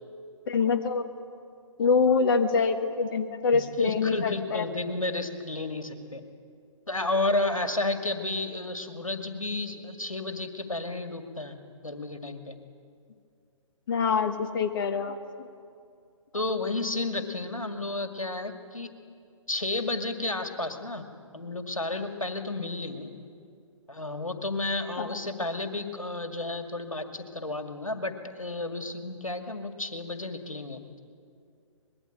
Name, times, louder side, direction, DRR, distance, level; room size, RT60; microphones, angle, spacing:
voice 1, 0.5-1.1 1.8-4.6 13.9-15.5 25.0-25.2, left 5 dB, 40° left, 7 dB, 1.2 m, -25 dB
voice 2, 3.5-6.2 6.9-11.6 11.8-12.6 16.3-18.9 19.5-21.1 21.3-23.1 23.9-31.0, left 2 dB, 90° left, 6 dB, 2.2 m, -32 dB
24.5 x 21.0 x 9.1 m, 2.4 s
figure-of-eight pair, 135°, 17 cm